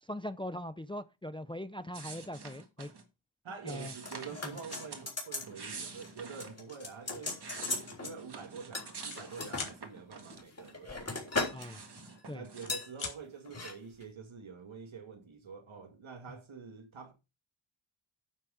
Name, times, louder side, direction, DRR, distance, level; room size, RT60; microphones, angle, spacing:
voice 1, 0.0-2.9 3.6-3.9 11.5-11.8 12.3-12.4, left 1 dB, 10° left, 0.4 m, -41 dB
sound 1, 1.9-3.0 3.7-5.1 5.4-6.6 7.1-10.7 11.0-12.7, right 4 dB, 55° right, 1.8 m, -47 dB
voice 2, 3.4-7.7 8.0-11.5 12.3-17.1, right 5 dB, 75° right, 2.0 m, -47 dB
sound 2, 4.1-5.5 5.8-6.1 6.4-8.1 8.7-9.7 10.3-11.7 12.0-12.2 12.7-12.9 13.4-13.7 14.0-14.1, left 3 dB, 30° left, 3.4 m, -38 dB
sound 3, 7.2-7.4 7.9-8.1 8.3-9.2 9.5-9.8 11.3-12.1 12.5-13.2, left 5 dB, 80° left, 2.5 m, -42 dB
9.5 x 6.1 x 4.9 m
wide cardioid pair, 125°, 48 cm